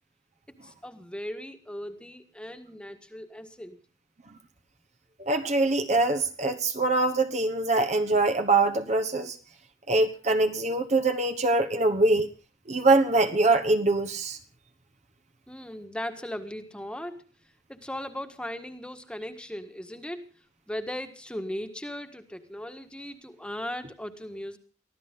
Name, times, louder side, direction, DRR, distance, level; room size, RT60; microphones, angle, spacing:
voice 1, 0.6-3.8 15.5-17.2 17.7-20.3 20.7-24.6, left 1 dB, 5° left, 1.6 m, -38 dB
voice 2, 5.2-9.4 9.9-12.3 12.7-14.4, right 2 dB, 35° right, 1.1 m, -23 dB
23.5 x 15.0 x 3.7 m
head